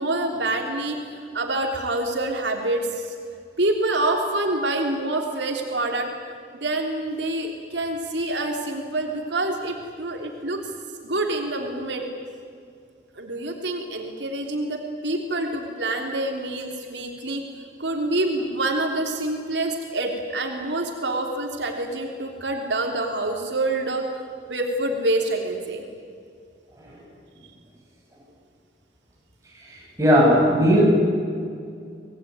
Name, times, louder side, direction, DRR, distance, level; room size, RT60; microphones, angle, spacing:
voice 1, 0.0-3.1 3.6-6.1 6.5-10.6 11.0-12.0 13.1-17.4 17.8-24.2 24.5-25.8, right 2 dB, 85° right, 2 dB, 3.2 m, -26 dB
voice 2, 29.7-30.9, equal, 15° right, -2 dB, 7.4 m, -17 dB
26.0 x 20.0 x 9.6 m, 2.3 s
head